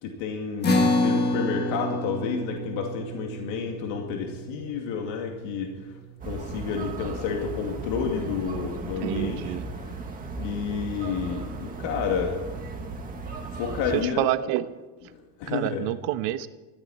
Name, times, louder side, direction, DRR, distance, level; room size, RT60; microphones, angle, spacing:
voice 1, 0.0-5.9 6.2-9.6 9.8-10.0 10.4-12.5 13.5-14.3 15.1-15.8, left 6 dB, 65° left, 1 dB, 2.6 m, -30 dB
sound 1, 0.6-7.3, left 1 dB, 20° left, 1.6 m, -29 dB
sound 2, 6.2-14.0, right 3 dB, 15° right, 1.9 m, -36 dB
voice 2, 9.0-9.6 14.2-14.7 15.5-16.5, right 14 dB, 75° right, 11 dB, 1.2 m, -27 dB
21.0 x 15.0 x 4.4 m, 1.2 s
cardioid pair, 180°, 49 cm